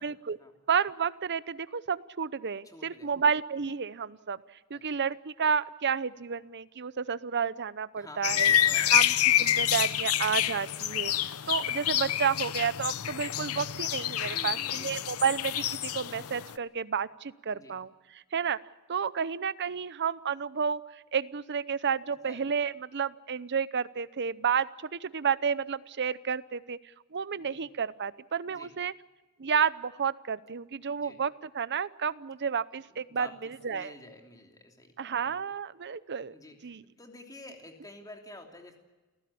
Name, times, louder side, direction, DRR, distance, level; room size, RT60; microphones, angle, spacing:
voice 1, 0.0-0.4 0.7-4.4 4.7-8.5 8.9-9.1 9.4-11.1 11.5-17.9 18.3-18.6 18.9-20.8 21.1-26.8 27.1-28.9 29.4-33.9 35.0-36.3 36.6-36.8, right 6 dB, 50° right, 17 dB, 0.7 m, -31 dB
voice 2, 2.6-3.1 4.7-5.0 7.9-9.0 14.2-15.0 17.5-17.8 22.2-22.4 27.4-27.6 28.5-28.7 31.0-31.2 32.9-35.4 36.3-38.8, left 1 dB, 15° left, 3 dB, 3.0 m, -50 dB
sound 1, 8.2-16.5, left 11 dB, 75° left, 0.7 m, -27 dB
29.0 x 15.5 x 8.6 m, 1.2 s
head